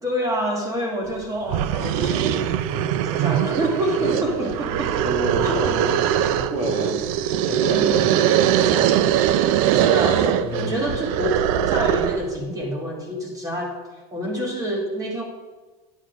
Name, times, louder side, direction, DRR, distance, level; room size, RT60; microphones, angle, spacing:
voice 1, 0.0-5.0 5.4-5.8 7.7-8.1 9.7-13.8 14.1-15.2, equal, 20° right, 1 dB, 1.5 m, -27 dB
sound 1, 1.1-1.2 1.5-12.3, right 10 dB, 70° right, 0.5 m, -21 dB
voice 2, 4.0-6.0 6.3-7.0 7.4-8.9 10.4-10.9, right 2 dB, 40° right, 0 dB, 2.5 m, -29 dB
9.6 x 7.4 x 5.1 m, 1.3 s
supercardioid pair, 150°, 19 cm